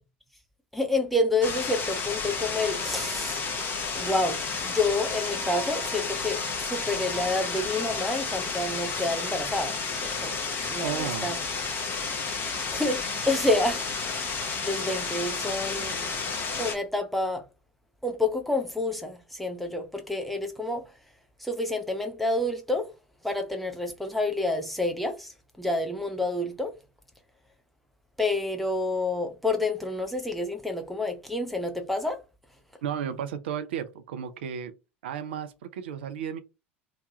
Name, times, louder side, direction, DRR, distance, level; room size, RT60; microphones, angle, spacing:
voice 1, 0.7-3.4 4.0-9.8 10.0-10.3 10.6-11.4 12.7-13.9 14.2-16.0 16.6-17.4 18.0-20.8 21.4-22.9 23.2-25.3 25.6-26.7 28.2-32.2, left 2 dB, ahead, 0.6 m, -28 dB
sound 1, 1.4-16.7, left 4 dB, 35° left, 0.9 m, -31 dB
Wind instrument woodwind instrument, 2.6-7.7, right 1 dB, 85° right, 1.0 m, -46 dB
voice 2, 10.8-11.3 32.8-34.7 35.0-36.4, right 8 dB, 65° right, 0.4 m, -33 dB
2.9 x 2.2 x 2.8 m
figure-of-eight pair, 70°, 6 cm